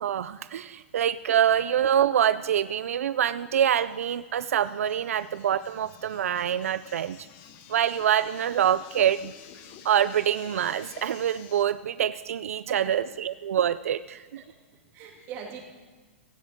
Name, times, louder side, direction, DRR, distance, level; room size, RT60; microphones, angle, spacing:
voice 1, 0.0-7.3 7.7-9.3 9.8-14.4, right 9 dB, 90° right, 15 dB, 0.4 m, -25 dB
sound 1, 3.6-11.6, left 9 dB, 30° left, 0.8 m, -50 dB
voice 2, 14.7-15.6, right 7 dB, 30° right, 1 dB, 2.5 m, -42 dB
16.5 x 13.5 x 3.6 m, 1.3 s
hypercardioid pair, 165°, 7 cm